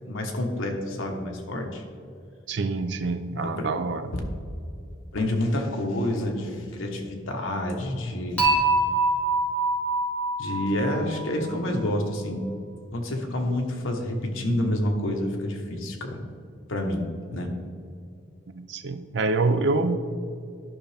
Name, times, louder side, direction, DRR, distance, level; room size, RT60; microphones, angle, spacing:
voice 1, 0.0-1.8 3.4-3.7 4.1-4.2 5.1-8.4 10.4-12.5 12.9-16.2 16.7-17.5, left 1 dB, 85° left, 2 dB, 1.2 m, -28 dB
voice 2, 2.5-4.1 18.5-20.0, right 3 dB, 60° right, 10 dB, 0.5 m, -26 dB
Dishes pots and pans / Chink clink, 8.4-11.5, right 2 dB, 5° left, 1.9 m, -24 dB
11.5 x 5.6 x 3.4 m, 2.4 s
head